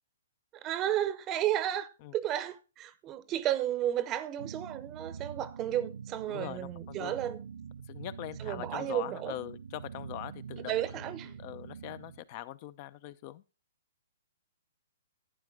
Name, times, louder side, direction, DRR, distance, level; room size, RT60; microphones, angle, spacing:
voice 1, 0.6-7.4 8.4-9.3 10.7-11.3, right 11 dB, 25° right, 0.8 m, -33 dB
sound 1, 4.4-12.2, right 6 dB, 75° right, 0.5 m, -45 dB
voice 2, 6.3-7.2 7.9-13.4, left 14 dB, 40° left, 0.7 m, -42 dB
11.5 x 9.6 x 3.5 m
hypercardioid pair, 125°, 0 cm